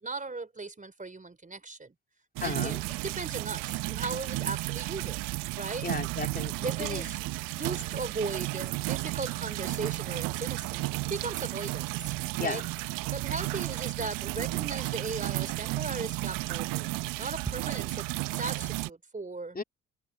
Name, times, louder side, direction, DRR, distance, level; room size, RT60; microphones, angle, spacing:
voice 1, 0.0-1.9 2.4-5.2 5.6-5.9 6.6-12.1 12.4-12.6 13.1-19.6, right 3 dB, 25° right, 4.1 m, -38 dB
voice 2, 2.4-2.8 5.8-6.5 6.8-7.1 12.4-12.6 19.5-19.6, left 4 dB, 25° left, 4.2 m, -34 dB
sound 1, 2.4-18.9, right 22 dB, 75° right, 1.1 m, -33 dB
hypercardioid pair, 50°, 34 cm